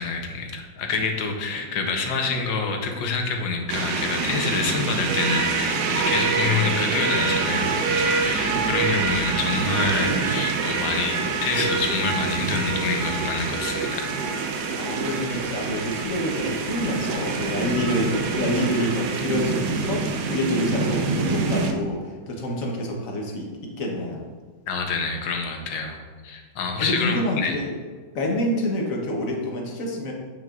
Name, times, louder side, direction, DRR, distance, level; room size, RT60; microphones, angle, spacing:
voice 1, 0.0-14.1 24.6-26.0 26.2-27.6, left 4 dB, 85° left, 3 dB, 1.6 m, -27 dB
sound 1, 3.7-21.7, right 4 dB, 70° right, 1.2 m, -25 dB
voice 2, 14.8-24.2 26.8-27.8 28.1-30.1, left 1 dB, 50° left, 0 dB, 1.3 m, -27 dB
8.8 x 6.2 x 2.5 m, 1.5 s
omnidirectional pair, 2.0 m